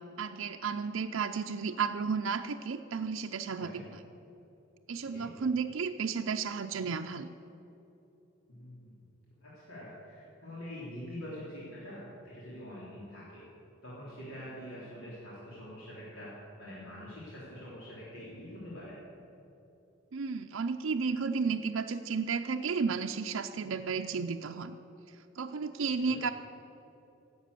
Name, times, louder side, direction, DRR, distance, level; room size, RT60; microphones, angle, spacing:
voice 1, 0.2-3.8 4.9-7.3 20.1-24.7 25.4-26.3, right 5 dB, 80° right, 5 dB, 0.5 m, -33 dB
voice 2, 8.5-9.0 9.4-13.4 13.8-16.3 16.6-19.0 26.1-26.2, equal, 85° left, -8 dB, 3.5 m, -45 dB
17.5 x 8.1 x 6.8 m, 2.9 s
head